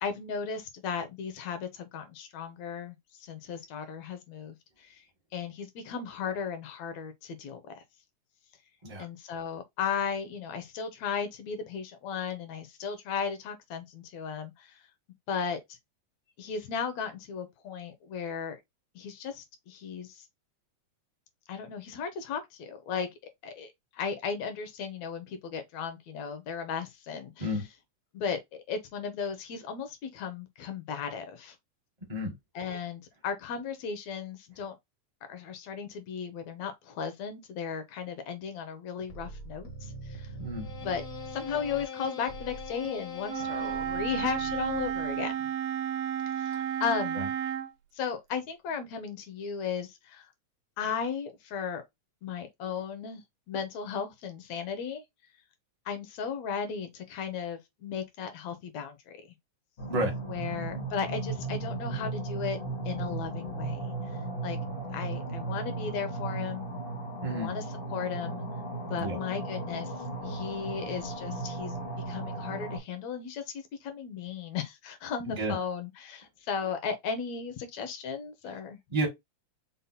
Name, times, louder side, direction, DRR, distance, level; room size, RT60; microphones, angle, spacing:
voice 1, 0.0-5.0 5.3-7.8 9.0-14.8 15.3-15.6 16.4-18.6 19.0-20.3 21.5-23.1 23.4-27.6 28.1-28.4 28.7-31.6 32.6-34.8 35.3-40.3 40.8-41.0 41.3-45.5 46.3-47.2 47.9-50.3 50.8-51.8 52.2-53.2 53.5-55.0 55.9-59.1 60.2-62.6 62.9-63.9 64.4-64.6 64.9-66.7 67.3-67.6 67.9-68.4 68.9-69.9 70.2-71.7 72.1-78.8, left 6 dB, 70° left, 2.1 m, -35 dB
sound 1, 39.1-45.3, left 2 dB, 55° left, 0.9 m, -42 dB
voice 2, 40.4-40.7 47.2-47.3 59.9-60.1 67.2-67.5 69.0-69.2 75.3-75.6 78.9-79.1, right 1 dB, 40° right, 0.5 m, -30 dB
Wind instrument woodwind instrument, 43.3-47.7, right 9 dB, 75° right, 1.7 m, -32 dB
sound 2, 59.8-72.8, right 2 dB, 90° left, 0.5 m, -36 dB
5.6 x 2.1 x 4.1 m
omnidirectional pair, 3.4 m